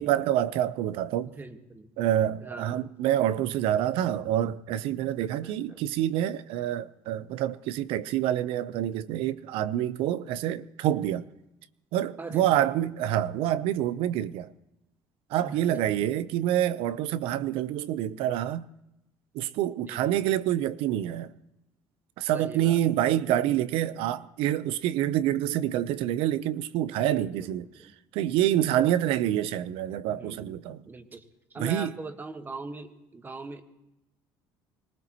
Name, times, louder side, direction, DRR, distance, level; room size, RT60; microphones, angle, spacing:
voice 1, 0.0-1.3 2.0-11.2 11.9-14.5 15.3-18.7 19.3-21.3 22.2-27.7 28.1-30.8 31.6-31.9, right 12 dB, 75° right, 0.7 m, -27 dB
voice 2, 1.2-1.9 2.4-2.9 5.2-5.8 12.2-12.9 15.4-15.8 19.8-20.2 22.3-22.8 26.9-27.9 30.1-31.2 31.5-33.6, right 3 dB, 20° right, 1.4 m, -42 dB
24.5 x 19.0 x 3.0 m
cardioid pair, 120°, 9 cm